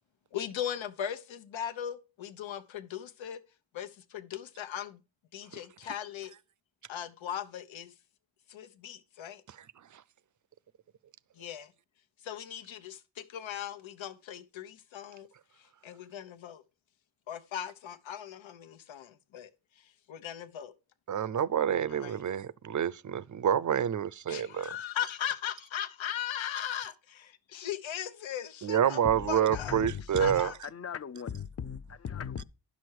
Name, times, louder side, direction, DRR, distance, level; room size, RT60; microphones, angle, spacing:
voice 1, 0.3-3.4 3.7-5.0 5.3-6.3 6.9-7.9 8.5-9.4 11.4-11.7 12.2-15.3 15.8-16.6 17.3-19.5 20.1-20.7 21.9-22.1 24.3-29.0 29.3-29.8 30.2-30.5, left 10 dB, 85° left, 1.1 m, -38 dB
voice 2, 21.1-24.7 28.6-30.5, right 9 dB, 45° right, 0.5 m, -28 dB
voice 3, 29.0-30.4 30.6-32.4, left 7 dB, 35° left, 0.5 m, -38 dB
11.0 x 6.3 x 4.7 m
cardioid pair, 90°, 45 cm